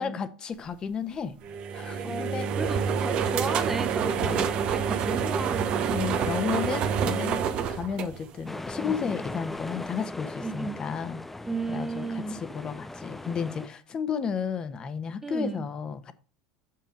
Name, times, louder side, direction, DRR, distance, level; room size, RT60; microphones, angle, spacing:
voice 1, 0.0-1.4 1.7-2.5 4.2-4.5 5.9-11.2 11.7-16.1, left 6 dB, 35° left, 1.1 m, -33 dB
sound 1, 1.4-8.7, right 7 dB, 50° right, 1.1 m, -27 dB
voice 2, 2.6-6.0 10.4-10.8 11.4-12.4 15.2-15.6, right 3 dB, 10° right, 1.2 m, -34 dB
sound 2, 8.5-13.7, left 2 dB, 10° left, 0.5 m, -38 dB
7.3 x 5.7 x 5.2 m
hypercardioid pair, 90°, 2 cm